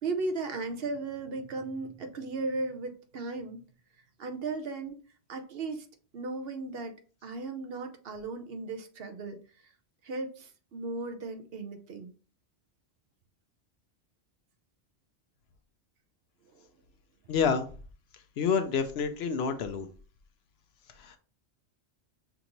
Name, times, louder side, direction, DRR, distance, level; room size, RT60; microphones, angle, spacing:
voice 1, 0.0-3.6 4.2-5.0 5.3-5.9 6.1-7.0 7.2-9.4 10.0-12.1 16.5-16.7, right 3 dB, 60° right, 7 dB, 0.9 m, -36 dB
voice 2, 17.3-17.7 18.4-19.9 21.0-21.2, left 6 dB, 70° left, 8 dB, 0.8 m, -28 dB
5.8 x 2.6 x 2.9 m, 0.38 s
omnidirectional pair, 1.2 m